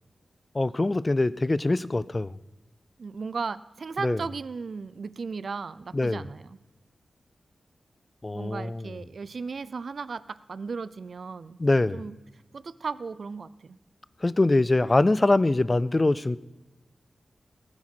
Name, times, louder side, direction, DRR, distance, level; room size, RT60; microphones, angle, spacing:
voice 1, 0.5-2.3 4.0-4.2 5.9-6.3 8.2-8.9 11.6-12.0 14.2-16.4, left 2 dB, 25° left, 0.3 m, -23 dB
voice 2, 3.0-6.6 8.3-11.6 11.9-12.1 12.5-13.8, right 4 dB, 55° right, 0.4 m, -36 dB
19.0 x 9.6 x 4.5 m
wide cardioid pair, 150°, 0 cm